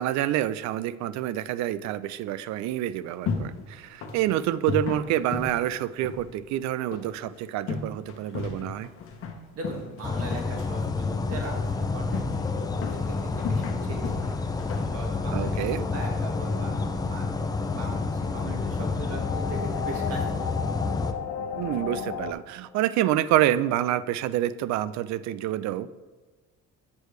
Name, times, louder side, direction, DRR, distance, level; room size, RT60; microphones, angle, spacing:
voice 1, 0.0-8.9 15.3-15.8 21.6-25.9, right 13 dB, 70° right, 16 dB, 0.4 m, -27 dB
sound 1, 2.8-16.3, left 4 dB, 50° left, 1.0 m, -36 dB
voice 2, 9.5-14.3 14.9-17.3 17.7-20.4, right 2 dB, 55° right, 0 dB, 1.9 m, -39 dB
sound 2, 10.0-21.1, left 3 dB, 15° left, 0.4 m, -29 dB
sound 3, 16.4-22.3, left 8 dB, 80° left, 0.7 m, -36 dB
8.4 x 6.4 x 3.2 m, 1.3 s
cardioid pair, 145°, 29 cm